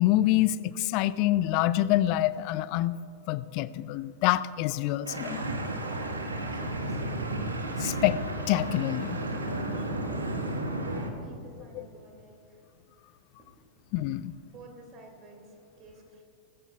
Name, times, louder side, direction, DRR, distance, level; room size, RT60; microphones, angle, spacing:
voice 1, 0.0-3.0 3.3-5.4 7.8-8.2 8.5-9.2 11.8-11.9 13.9-14.3, left 14 dB, 45° left, 17 dB, 0.4 m, -26 dB
sound 1, 5.1-11.1, right 1 dB, 75° right, 1.3 m, -32 dB
voice 2, 6.2-7.3 9.7-12.6 13.4-13.8 14.4-16.2, right 2 dB, 35° right, 2 dB, 2.5 m, -52 dB
18.5 x 15.5 x 2.3 m, 2.6 s
figure-of-eight pair, 90°, 0 cm